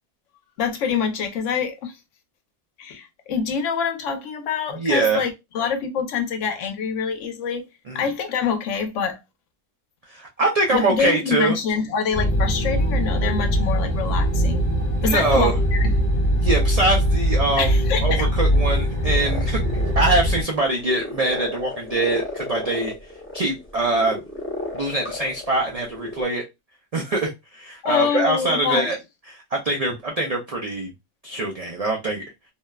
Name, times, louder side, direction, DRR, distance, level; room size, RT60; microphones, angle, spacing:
voice 1, 0.6-1.9 2.8-7.7 7.9-9.2 10.7-14.7 15.0-15.9 17.6-18.3 27.8-29.0, left 6 dB, 80° left, 1.0 m, -25 dB
voice 2, 4.7-5.3 7.9-8.1 10.1-11.6 15.0-15.5 16.4-22.9 23.3-24.2 24.7-26.4 26.9-29.0 29.3-30.9 31.2-32.2, right 2 dB, 65° right, 0.3 m, -23 dB
sound 1, 12.1-20.4, equal, 40° left, 0.7 m, -21 dB
sound 2, 18.6-26.3, left 2 dB, 20° left, 0.4 m, -35 dB
2.8 x 2.1 x 2.2 m
omnidirectional pair, 1.3 m